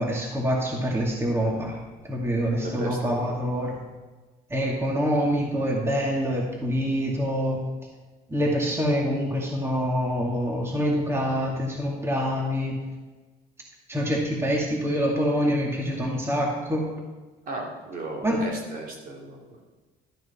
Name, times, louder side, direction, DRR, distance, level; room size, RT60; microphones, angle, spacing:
voice 1, 0.0-1.8 2.0-3.8 4.5-7.6 8.3-12.8 13.9-16.9 18.2-18.4, equal, 15° right, -2 dB, 2.2 m, -25 dB
voice 2, 2.6-3.4 17.5-19.6, right 2 dB, 55° right, -1 dB, 3.0 m, -36 dB
13.0 x 8.5 x 4.3 m, 1.2 s
cardioid pair, 110°, 17 cm